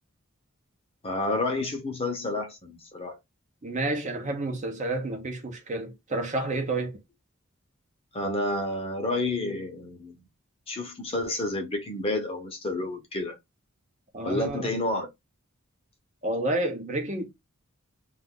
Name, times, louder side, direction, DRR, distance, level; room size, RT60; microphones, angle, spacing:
voice 1, 1.0-3.2 8.1-10.3 10.7-13.4 14.2-15.1, left 2 dB, 25° left, 0.7 m, -30 dB
voice 2, 3.6-7.0 14.1-14.8 16.2-17.2, right 2 dB, 35° right, 0.6 m, -30 dB
2.5 x 2.3 x 3.5 m
head